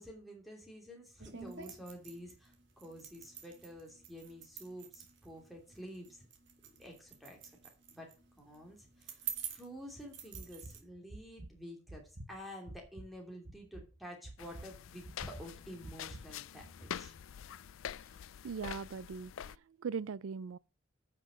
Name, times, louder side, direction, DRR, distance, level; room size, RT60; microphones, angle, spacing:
voice 1, 0.0-6.3 6.8-7.4 7.9-8.1 8.4-12.0 12.3-17.1, equal, ahead, 3.0 m, -50 dB
sound 1, 1.2-10.8, right 8 dB, 55° right, 1.9 m, -48 dB
heart beat, 10.3-10.7 11.1-11.5 11.9-13.1 13.5-13.9 14.2-14.7 15.0-15.5 15.8-16.2, right 1 dB, 35° right, 1.3 m, -48 dB
sound 2, 14.4-19.6, left 9 dB, 75° left, 0.4 m, -46 dB
voice 2, 18.4-20.6, right 6 dB, 85° right, 0.4 m, -40 dB
9.3 x 6.0 x 6.4 m
head